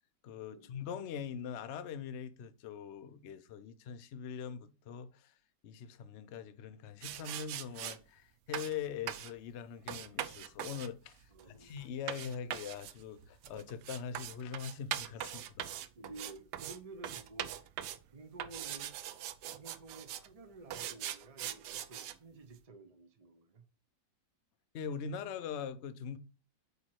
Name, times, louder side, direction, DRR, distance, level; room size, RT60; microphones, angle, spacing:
voice 1, 0.2-5.3 5.6-15.7 24.7-26.2, left 7 dB, 65° left, 0.6 m, -42 dB
sound 1, 7.0-8.0 8.5-8.8 9.1-9.3 9.9-16.8 17.0-18.0 18.4-20.3 20.7-22.1, right 11 dB, 75° right, 1.2 m, -41 dB
voice 2, 11.3-11.7 16.0-17.7 18.1-18.9 19.5-23.6, right 2 dB, 45° right, 0.4 m, -52 dB
8.1 x 3.1 x 4.5 m
omnidirectional pair, 1.9 m